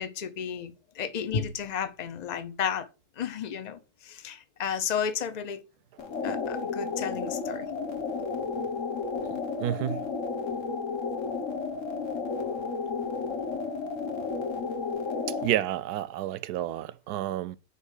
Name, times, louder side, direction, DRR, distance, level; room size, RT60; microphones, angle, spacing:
voice 1, 0.0-2.9 3.2-5.6 6.2-7.7 12.3-12.7, left 7 dB, 35° left, 0.7 m, -33 dB
sound 1, 6.0-15.6, left 4 dB, 55° left, 1.5 m, -32 dB
voice 2, 9.6-10.0 15.3-17.6, right 13 dB, 80° right, 1.1 m, -30 dB
5.7 x 5.0 x 6.4 m
omnidirectional pair, 1.6 m